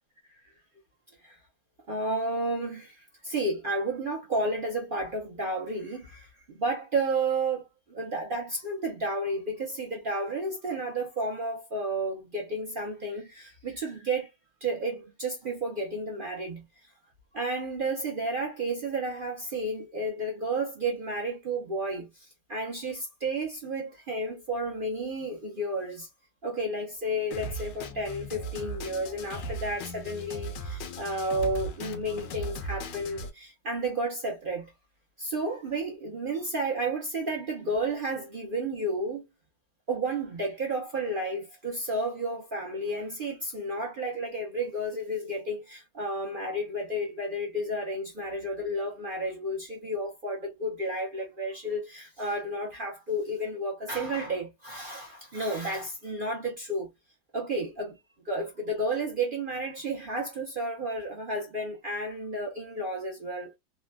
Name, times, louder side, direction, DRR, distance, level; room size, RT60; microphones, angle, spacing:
voice 1, 1.9-14.3 14.6-16.9 17.3-26.1 26.4-34.7 35.2-39.2 39.9-56.9 57.3-58.0 58.2-63.5, right 1 dB, 55° right, 0.5 m, -32 dB
Drum kit, 27.3-33.3, right 1 dB, 80° left, 1.4 m, -38 dB
3.4 x 2.2 x 2.2 m
omnidirectional pair, 2.0 m